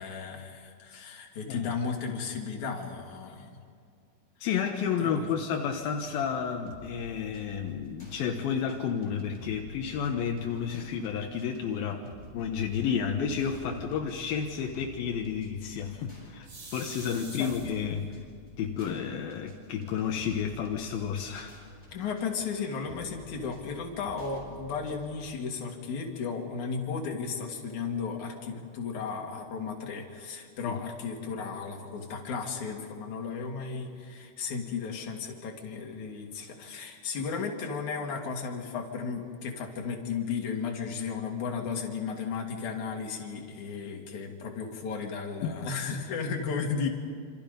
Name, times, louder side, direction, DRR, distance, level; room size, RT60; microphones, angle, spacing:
voice 1, 0.0-3.6 5.0-5.3 17.4-17.5 21.9-46.9, left 5 dB, 45° left, 1 dB, 3.2 m, -34 dB
voice 2, 4.4-12.1 12.3-18.2 18.6-21.5 30.6-30.8 45.4-45.5, left 7 dB, 70° left, 2 dB, 2.3 m, -31 dB
sound 1, 5.8-25.3, left 1 dB, 5° right, 7.1 m, -51 dB
sound 2, 16.4-18.0 18.8-18.9 19.3-19.4 19.7-20.3, right 2 dB, 45° right, 6.8 m, -46 dB
28.0 x 27.0 x 5.3 m, 2.3 s
omnidirectional pair, 5.9 m